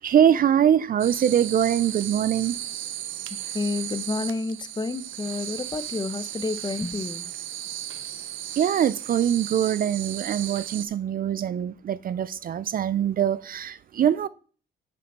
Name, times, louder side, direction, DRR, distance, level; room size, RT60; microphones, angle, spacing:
voice 1, 0.0-2.6 8.6-14.3, right 9 dB, 45° right, 0.4 m, -23 dB
sound 1, 1.0-10.9, right 11 dB, 80° right, 0.7 m, -35 dB
voice 2, 3.5-7.3, left 3 dB, 20° left, 0.8 m, -30 dB
6.7 x 6.1 x 5.9 m
cardioid pair, 90°, 20 cm